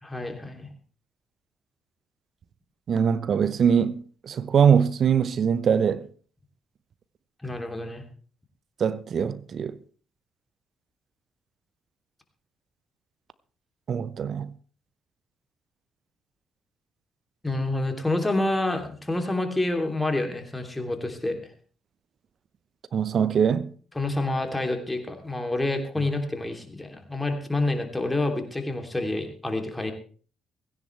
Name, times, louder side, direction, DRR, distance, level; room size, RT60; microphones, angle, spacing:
voice 1, 0.0-0.7 7.4-8.0 17.4-21.4 23.9-29.9, left 2 dB, 15° left, 3.0 m, -28 dB
voice 2, 2.9-6.0 8.8-9.8 13.9-14.5 22.9-23.7, right 7 dB, 50° right, 0.8 m, -22 dB
16.5 x 15.5 x 3.3 m
figure-of-eight pair, 45°, 0 cm